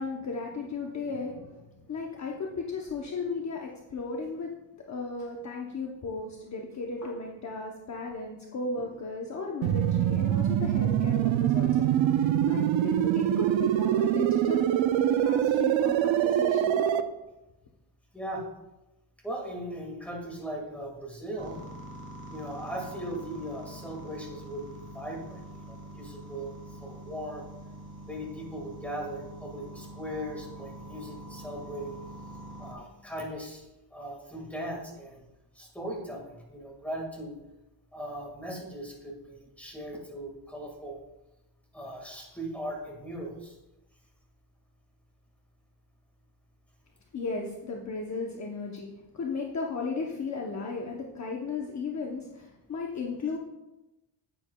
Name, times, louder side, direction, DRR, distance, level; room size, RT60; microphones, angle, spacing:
voice 1, 0.0-1.5 1.9-4.5 4.9-11.8 12.1-14.6 15.2-16.9 47.1-48.9 49.2-52.4 52.7-53.4, left 4 dB, 40° left, 0 dB, 0.8 m, -35 dB
sound 1, 9.6-17.0, right 11 dB, 80° right, 0.6 m, -24 dB
voice 2, 19.2-21.6 22.3-26.6 26.8-27.4 28.1-31.9 32.6-33.6 33.9-35.2 35.6-37.4 37.9-41.0 41.7-43.5, right 1 dB, 5° left, -1 dB, 1.7 m, -38 dB
sound 2, 21.4-32.7, right 1 dB, 30° right, 2.0 m, -45 dB
9.7 x 8.7 x 2.2 m, 0.99 s
wide cardioid pair, 155°, 45 cm